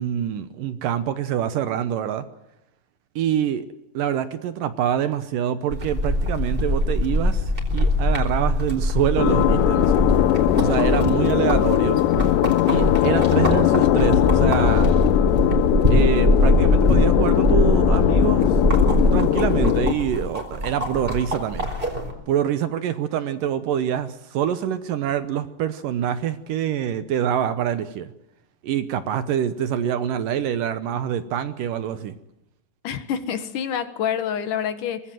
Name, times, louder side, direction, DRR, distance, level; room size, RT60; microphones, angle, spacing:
voice 1, 0.0-2.2 3.2-3.7 3.9-9.9 10.5-12.0 12.7-14.9 15.9-18.6 19.1-21.7 22.3-28.1 28.6-32.2, right 9 dB, 70° right, 12 dB, 2.2 m, -25 dB
sound 1, 5.7-22.1, left 1 dB, 15° right, 4.2 m, -22 dB
sound 2, 9.2-19.9, left 13 dB, 90° left, 3.2 m, -20 dB
voice 2, 32.8-35.0, left 8 dB, 60° left, 11 dB, 2.6 m, -27 dB
24.5 x 19.5 x 7.7 m, 0.85 s
omnidirectional pair, 4.8 m